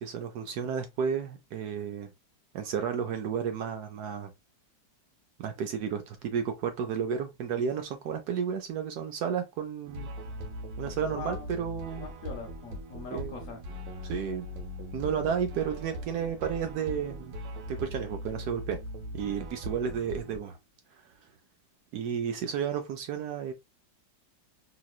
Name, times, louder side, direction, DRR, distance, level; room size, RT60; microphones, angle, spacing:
voice 1, 0.0-2.1 2.5-4.3 5.4-10.1 10.8-12.1 13.1-13.3 14.0-14.5 14.9-17.3 17.7-18.8 19.1-20.6 21.9-23.5, right 7 dB, 70° right, 1.0 m, -32 dB
sound 1, 9.9-20.4, equal, 85° right, 1.3 m, -40 dB
voice 2, 10.9-11.5 12.0-13.6, left 4 dB, 60° left, 0.9 m, -42 dB
3.0 x 2.9 x 2.3 m
omnidirectional pair, 1.9 m